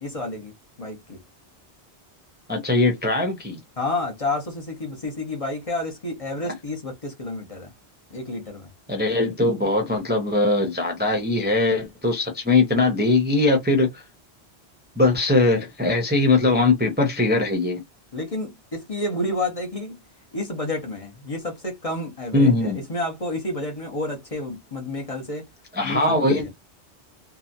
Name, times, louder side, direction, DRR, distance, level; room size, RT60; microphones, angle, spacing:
voice 1, 0.0-1.2 3.8-7.7 8.1-8.7 18.1-20.0 20.3-25.4 25.8-26.5, left 2 dB, 35° left, 0.9 m, -30 dB
voice 2, 2.5-3.6 8.9-14.0 15.0-17.8 22.3-22.8 25.7-26.5, left 2 dB, 10° right, 0.6 m, -21 dB
2.9 x 2.3 x 2.5 m
omnidirectional pair, 1.1 m